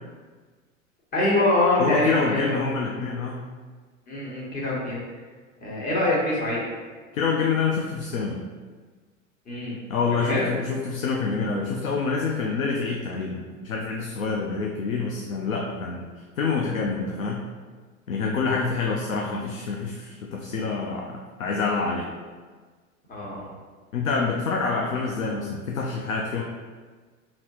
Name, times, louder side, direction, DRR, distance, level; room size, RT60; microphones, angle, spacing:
voice 1, 1.1-2.6 4.1-5.0 5.6-6.7 9.5-9.7 10.2-10.5 18.3-18.6 23.1-23.5, left 1 dB, 20° left, -6 dB, 1.2 m, -24 dB
voice 2, 1.8-3.5 7.1-8.4 9.9-16.1 16.4-17.5 18.1-22.1 23.9-26.4, left 4 dB, 85° left, 0 dB, 0.5 m, -27 dB
4.1 x 2.8 x 3.0 m, 1.4 s
hypercardioid pair, 90°, 39 cm